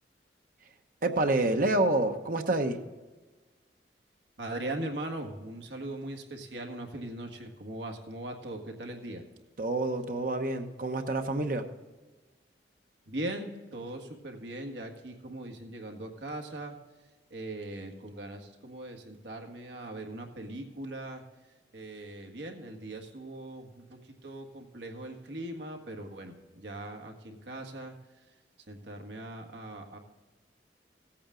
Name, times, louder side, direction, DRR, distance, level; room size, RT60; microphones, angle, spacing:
voice 1, 1.0-2.8 9.6-11.7, right 2 dB, 50° right, 6 dB, 0.9 m, -28 dB
voice 2, 4.4-9.2 13.1-16.8 17.3-21.2 21.7-27.9 28.7-30.0, right 1 dB, 80° right, 3 dB, 1.7 m, -40 dB
16.5 x 8.6 x 3.8 m, 1.3 s
head